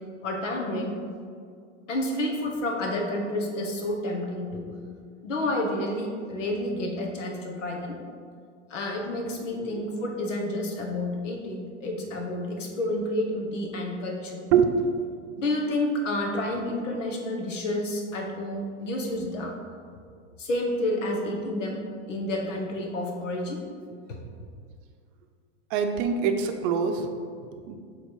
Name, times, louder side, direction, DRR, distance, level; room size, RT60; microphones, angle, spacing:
voice 1, 0.2-0.9 1.9-4.7 5.2-8.0 8.7-14.5 15.4-19.5 20.4-21.8 22.1-23.6 24.1-24.2, left 1 dB, 85° left, 1 dB, 1.3 m, -30 dB
voice 2, 25.7-27.8, right 7 dB, 45° right, 6 dB, 0.6 m, -25 dB
6.9 x 3.5 x 4.8 m, 2.2 s
hypercardioid pair, 125°, 37 cm